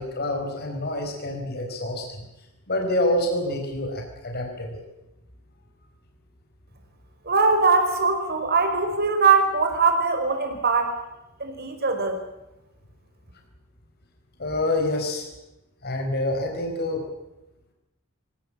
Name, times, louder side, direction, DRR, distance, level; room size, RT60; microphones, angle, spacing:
voice 1, 0.0-2.2 2.7-4.8 14.4-15.3 15.8-17.0, left 1 dB, 50° left, 3 dB, 4.7 m, -27 dB
voice 2, 7.2-11.0 11.4-12.2, right 4 dB, 50° right, 6 dB, 4.9 m, -21 dB
24.0 x 18.0 x 8.6 m, 0.95 s
head